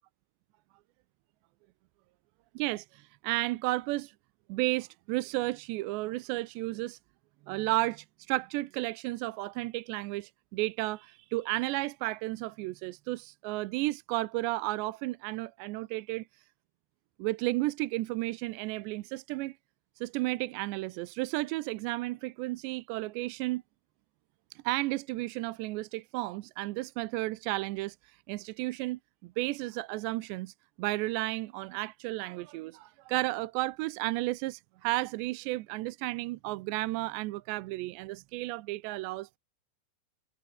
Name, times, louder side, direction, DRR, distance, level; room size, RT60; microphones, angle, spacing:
voice 1, 2.6-4.1 4.5-7.0 7.5-16.2 17.2-19.6 20.0-23.6 24.6-28.0 28.3-39.4, right 19 dB, 85° right, 2.9 m, -33 dB
omnidirectional pair, 5.1 m